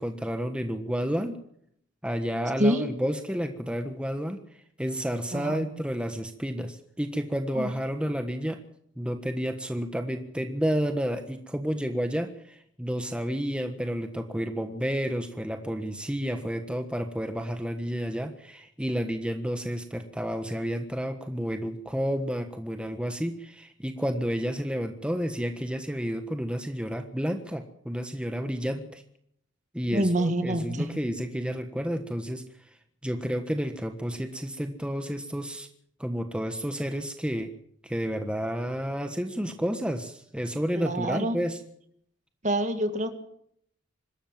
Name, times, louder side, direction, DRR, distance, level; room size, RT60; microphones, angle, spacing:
voice 1, 0.0-1.4 2.0-4.4 4.8-8.6 9.0-29.0 29.7-32.4 33.0-35.7 36.0-37.5 37.8-41.6, equal, 5° right, 6 dB, 1.4 m, -31 dB
voice 2, 2.6-2.9 5.3-5.7 7.5-7.7 29.9-30.9 40.8-41.4 42.4-43.1, right 1 dB, 35° right, 9 dB, 2.1 m, -26 dB
25.5 x 13.5 x 7.5 m, 0.67 s
head